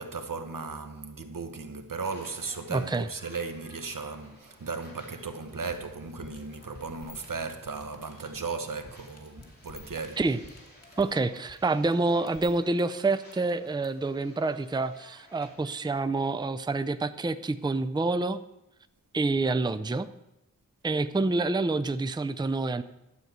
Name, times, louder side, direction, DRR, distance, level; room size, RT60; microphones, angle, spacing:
voice 1, 0.0-10.4 10.9-11.2, right 4 dB, 80° right, 1.1 m, -36 dB
sound 1, 2.0-16.0, left 1 dB, 30° left, 3.8 m, -56 dB
voice 2, 2.7-3.1 10.2-10.4 11.0-18.4 19.1-20.1 20.8-22.8, right 3 dB, 15° right, 0.5 m, -27 dB
sound 2, 5.5-13.8, left 3 dB, 50° left, 2.2 m, -49 dB
12.0 x 5.3 x 8.1 m
wide cardioid pair, 55°, 32 cm